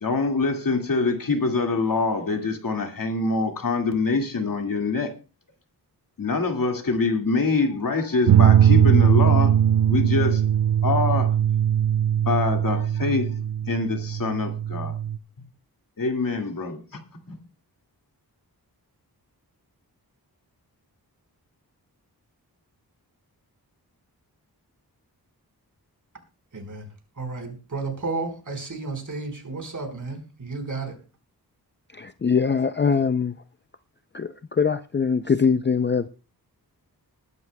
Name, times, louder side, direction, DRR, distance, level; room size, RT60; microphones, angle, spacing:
voice 1, 0.0-5.1 6.2-9.5 9.9-10.4 10.8-11.4 12.2-13.3 13.7-14.9 16.0-17.0 17.3-17.4, left 4 dB, 60° left, 2.1 m, -25 dB
sound 1, 8.3-15.2, right 9 dB, 85° right, 0.6 m, -20 dB
voice 2, 26.5-26.9 27.2-30.9, right 3 dB, 50° right, 4.5 m, -32 dB
voice 3, 31.9-33.4 34.1-36.1, left 6 dB, 30° left, 0.5 m, -22 dB
20.5 x 12.0 x 2.2 m
wide cardioid pair, 125°, 38 cm